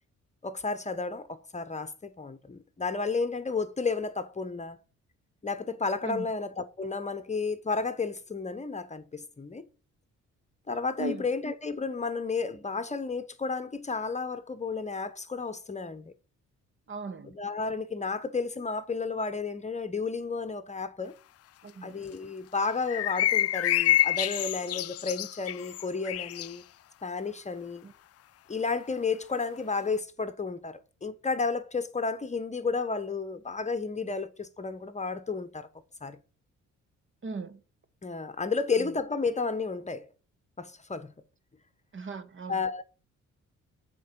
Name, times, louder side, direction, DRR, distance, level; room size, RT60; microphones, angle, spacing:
voice 1, 0.4-4.8 5.4-9.6 10.7-16.1 17.2-21.1 21.8-26.6 27.0-27.9 28.5-35.7 36.0-36.2 38.0-40.1 40.6-41.1 42.5-42.8, left 4 dB, 25° left, 1.0 m, -32 dB
voice 2, 16.9-17.3 21.6-22.0 27.8-27.9 37.2-37.6 41.9-42.6, right 3 dB, 40° right, 1.3 m, -38 dB
sound 1, 22.9-26.5, left 14 dB, 55° left, 0.4 m, -27 dB
9.2 x 4.7 x 7.4 m
cardioid pair, 90°, 30 cm